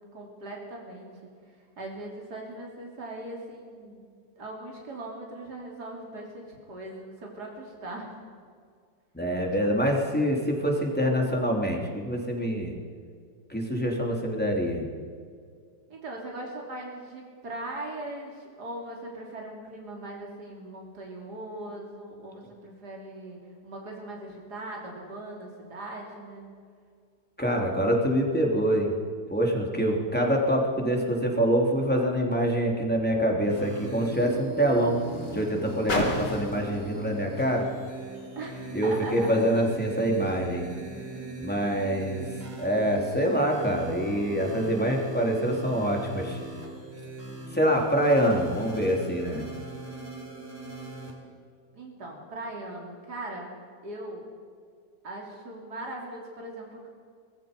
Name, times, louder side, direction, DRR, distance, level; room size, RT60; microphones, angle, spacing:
voice 1, 0.1-1.1 1.4-4.1 4.4-8.1 15.9-26.5 38.4-39.4 51.7-53.5 53.8-54.2 55.0-56.9, right 1 dB, 70° right, -1 dB, 3.9 m, -40 dB
voice 2, 9.1-12.8 13.5-14.9 27.4-28.9 29.3-35.0 35.3-37.7 38.7-40.7 41.4-46.4 47.5-49.5, equal, 5° left, 0 dB, 3.4 m, -25 dB
Car, 32.6-38.9 39.7-39.8, left 2 dB, 90° left, 4.0 m, -38 dB
sound 1, 33.5-51.1, right 2 dB, 35° right, 4.4 m, -40 dB
26.0 x 20.0 x 5.4 m, 2.1 s
omnidirectional pair, 1.8 m